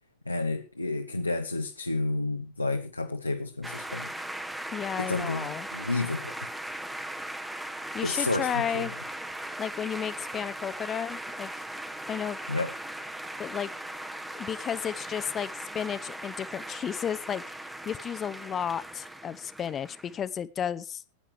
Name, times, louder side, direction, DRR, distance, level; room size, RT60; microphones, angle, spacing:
voice 1, 0.3-4.2 5.0-6.3 8.0-8.9 12.5-12.7, left 2 dB, 85° left, 4 dB, 1.1 m, -31 dB
sound 1, 3.6-20.3, right 1 dB, 5° right, 1.2 m, -39 dB
voice 2, 4.7-5.7 7.9-8.9 9.6-11.5 12.1-12.4 13.4-13.7 13.9-14.1 14.3-17.4 17.8-21.0, left 8 dB, 25° left, 16 dB, 0.8 m, -33 dB
15.5 x 9.9 x 4.8 m, 0.33 s
figure-of-eight pair, 90°, 0 cm